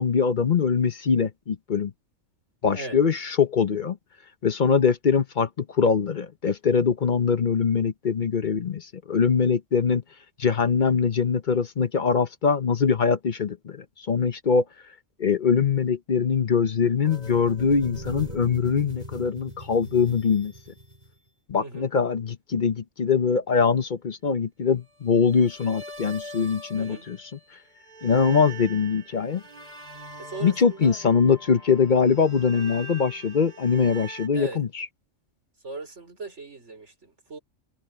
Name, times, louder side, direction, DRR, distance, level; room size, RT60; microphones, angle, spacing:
voice 1, 0.0-1.9 2.6-4.0 4.4-10.0 10.4-14.6 15.2-20.5 21.5-27.4 28.0-29.4 30.4-34.9, left 6 dB, 45° left, 0.8 m, -23 dB
sound 1, 17.0-21.3 25.1-27.5 27.8-34.3, right 1 dB, 30° right, 5.0 m, -42 dB
voice 2, 26.8-27.1 30.2-31.0 34.3-34.6 35.6-37.4, right 3 dB, 60° right, 5.1 m, -38 dB
omnidirectional pair, 1.4 m